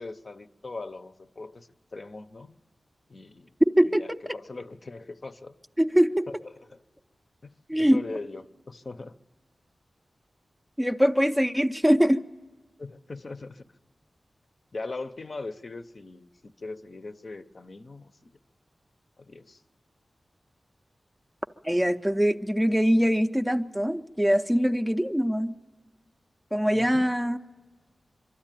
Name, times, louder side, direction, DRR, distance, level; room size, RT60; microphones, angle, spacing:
voice 1, 0.0-2.6 3.1-3.5 3.8-5.5 6.3-6.8 7.4-9.2 12.8-13.7 14.7-18.3 19.2-19.6 26.7-27.1, left 3 dB, 45° left, 8 dB, 0.7 m, -40 dB
voice 2, 5.8-6.3 7.7-8.0 10.8-12.2 21.6-25.5 26.5-27.4, equal, 5° right, 8 dB, 0.5 m, -23 dB
23.5 x 12.5 x 9.0 m, 1.4 s
wide cardioid pair, 110°, 0 cm